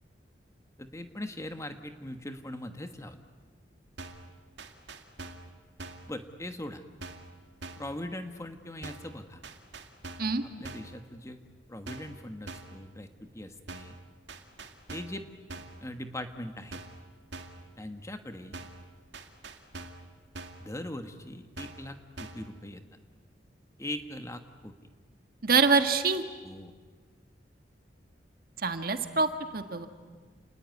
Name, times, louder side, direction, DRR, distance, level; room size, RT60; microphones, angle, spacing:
voice 1, 0.8-3.2 6.1-6.8 7.8-9.4 10.4-11.4 11.7-14.0 14.9-15.2 15.5-16.8 17.8-18.6 20.6-22.8 23.8-24.7 26.4-26.7, left 1 dB, 15° left, 7 dB, 1.3 m, -40 dB
sound 1, 4.0-4.3 4.6-5.5 5.8-6.1 7.0-7.3 7.6-7.9 8.8-9.1 9.4-10.4 10.6-11.0 11.9-12.2 12.5-12.8 13.7-14.0 14.3-15.2 15.5-15.8 16.7-17.0 17.3-17.6 18.5-18.9 19.1-20.1 20.3-20.7 21.6-21.9 22.2-22.5, right 3 dB, 75° right, 2.1 m, -44 dB
voice 2, 25.4-26.2 28.6-29.3 29.5-29.9, right 4 dB, 55° right, 7 dB, 1.6 m, -25 dB
29.0 x 19.0 x 9.4 m, 1.5 s
head